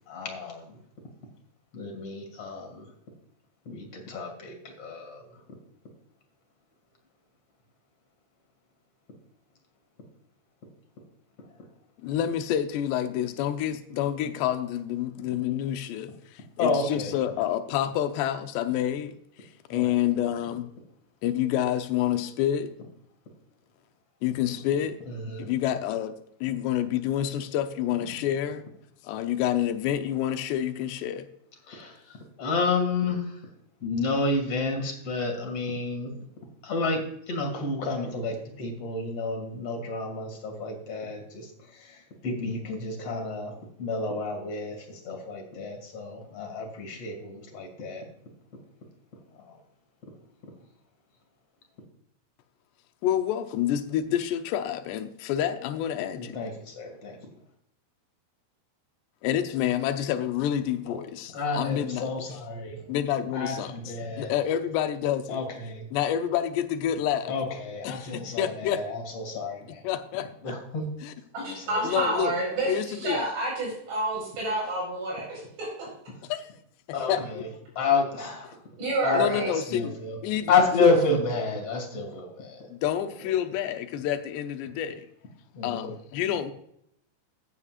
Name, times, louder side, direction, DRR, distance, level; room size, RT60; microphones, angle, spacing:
voice 1, 0.1-0.8 1.7-2.9 3.7-5.4 16.6-17.1 19.7-19.9 25.1-25.5 26.5-26.6 31.7-33.4 33.8-36.2 36.6-48.1 49.4-49.6 56.2-57.2 60.8-61.0 61.3-62.9 63.3-64.3 65.3-65.9 67.3-69.8 70.4-70.9 71.4-72.0 76.9-77.5 77.7-78.6 79.0-80.2 80.5-82.7 83.2-83.3 85.5-85.9, left 3 dB, 45° left, 2.7 m, -30 dB
voice 2, 12.0-20.7 21.2-22.7 24.2-25.0 25.4-26.1 26.4-28.6 29.0-31.3 53.0-56.4 59.2-62.1 62.9-63.7 64.2-65.4 65.9-67.4 67.8-68.8 69.8-70.3 71.0-71.1 71.8-72.4 72.7-73.3 76.3-76.5 77.1-77.4 79.1-80.0 80.2-80.9 82.7-85.1 85.6-86.5, left 10 dB, 85° left, 3.0 m, -28 dB
voice 3, 71.3-72.7 73.0-75.9 78.8-79.5, right 2 dB, 75° right, 6.7 m, -29 dB
15.0 x 9.8 x 2.5 m
omnidirectional pair, 4.8 m